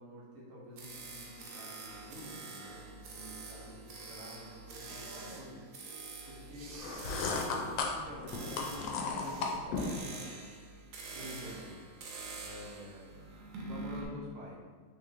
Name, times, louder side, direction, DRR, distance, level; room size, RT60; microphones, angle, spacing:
voice 1, 0.0-5.7 6.2-10.4 11.1-11.8 12.4-13.1 13.6-14.6, left 1 dB, 50° right, -6 dB, 1.3 m, -48 dB
sound 1, 0.8-14.0, right 3 dB, 85° right, 1.5 m, -47 dB
sound 2, 4.7-5.5 6.5-7.4 9.1-9.6 11.0-11.6, right 4 dB, 70° right, 0.9 m, -50 dB
sound 3, 6.7-10.0, left 4 dB, 85° left, 1.3 m, -35 dB
5.2 x 3.1 x 2.9 m, 1.5 s
omnidirectional pair, 2.0 m